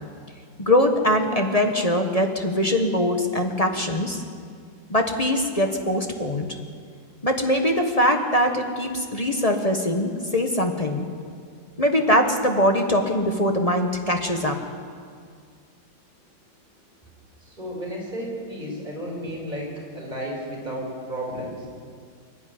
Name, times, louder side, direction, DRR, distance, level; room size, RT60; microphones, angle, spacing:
voice 1, 0.6-4.2 4.9-6.5 7.2-11.0 11.8-14.6, left 1 dB, 20° left, 4 dB, 1.2 m, -22 dB
voice 2, 17.4-21.7, equal, 20° right, -2 dB, 5.4 m, -33 dB
23.0 x 11.5 x 9.9 m, 2.1 s
omnidirectional pair, 2.1 m